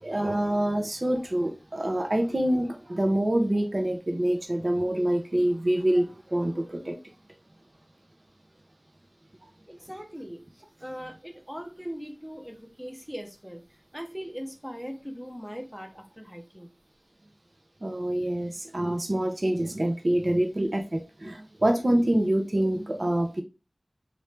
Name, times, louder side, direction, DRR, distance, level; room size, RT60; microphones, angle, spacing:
voice 1, 0.0-6.9 17.8-23.4, right 1 dB, 50° right, 4 dB, 0.7 m, -26 dB
voice 2, 9.7-13.6 13.9-16.7, equal, ahead, 3 dB, 0.8 m, -40 dB
3.1 x 2.6 x 3.3 m, 0.30 s
wide cardioid pair, 45°, 0 cm